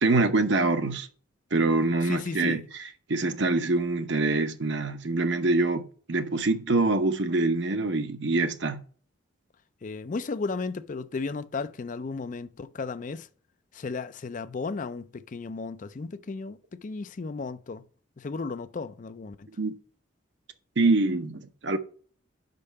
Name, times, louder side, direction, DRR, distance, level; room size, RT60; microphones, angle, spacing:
voice 1, 0.0-1.1 1.5-2.6 3.1-8.8 19.6-19.7 20.8-21.8, right 3 dB, 65° right, 0.8 m, -25 dB
voice 2, 2.0-2.6 9.8-13.3 13.7-17.8 18.2-19.5, left 4 dB, 40° left, 0.4 m, -34 dB
5.5 x 5.3 x 6.5 m
head